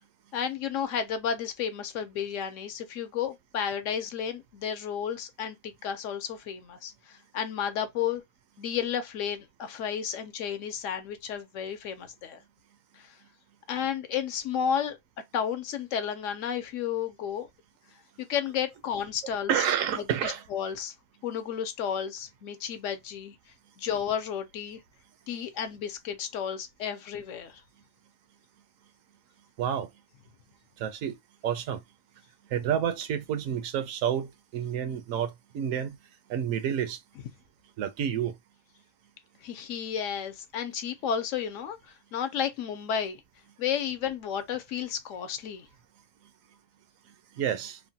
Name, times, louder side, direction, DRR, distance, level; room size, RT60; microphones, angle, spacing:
voice 1, 0.3-8.2 8.6-12.4 12.9-13.1 13.7-15.0 15.3-17.5 18.2-19.5 19.9-20.9 21.2-23.4 23.8-24.8 25.3-27.6 39.4-43.2 43.6-45.7, left 8 dB, 70° left, 0.9 m, -32 dB
voice 2, 19.5-20.4 29.6-29.9 30.8-31.2 31.4-31.8 32.5-36.0 36.3-37.0 37.8-38.4 47.4-47.8, right 9 dB, 75° right, 0.9 m, -29 dB
3.0 x 2.1 x 2.7 m
omnidirectional pair, 1.4 m